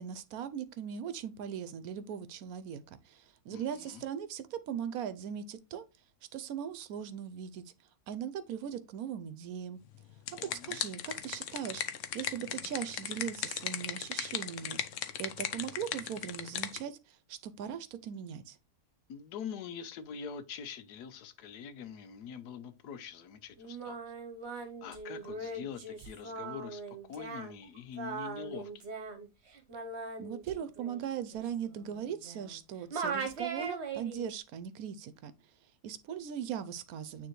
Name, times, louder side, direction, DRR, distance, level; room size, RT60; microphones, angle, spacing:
voice 1, 0.0-5.8 6.3-7.6 8.1-9.8 10.6-11.8 12.1-18.6 30.2-35.3 35.8-37.3, right 8 dB, 70° right, 1.0 m, -39 dB
voice 2, 3.5-4.0 10.4-10.8 19.1-24.0 24.5-28.9, left 7 dB, 85° left, 1.3 m, -44 dB
sound 1, 9.9-16.8, left 9 dB, 65° left, 0.9 m, -37 dB
Singing, 23.6-32.6 32.9-34.3, right 4 dB, 50° right, 1.1 m, -40 dB
9.0 x 3.3 x 3.1 m
omnidirectional pair, 1.7 m